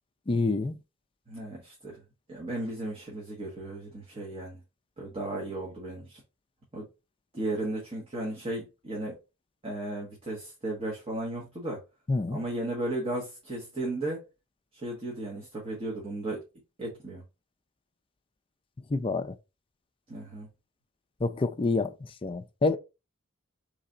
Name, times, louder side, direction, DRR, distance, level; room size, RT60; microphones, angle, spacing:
voice 1, 0.3-0.7 12.1-12.4 18.9-19.3 21.2-21.9 22.2-22.8, left 3 dB, 25° left, 0.4 m, -27 dB
voice 2, 1.3-2.0 2.3-4.6 5.0-6.2 6.7-6.9 7.3-9.2 9.6-11.8 12.3-14.2 14.7-16.4 16.8-17.2 20.1-20.5, right 1 dB, 25° right, 1.2 m, -35 dB
4.0 x 3.3 x 3.8 m
head